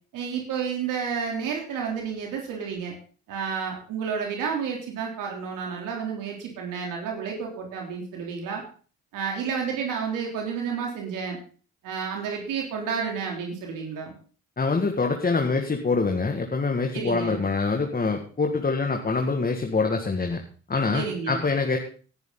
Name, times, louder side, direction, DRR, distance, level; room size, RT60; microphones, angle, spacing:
voice 1, 0.1-2.9 3.3-8.6 9.1-11.4 11.8-14.1 16.9-17.4 20.9-21.4, right 6 dB, 75° right, 0 dB, 3.6 m, -31 dB
voice 2, 14.6-20.4 20.7-21.8, left 4 dB, 30° left, 3 dB, 2.1 m, -25 dB
19.5 x 10.5 x 4.0 m, 0.41 s
supercardioid pair, 75°, 32 cm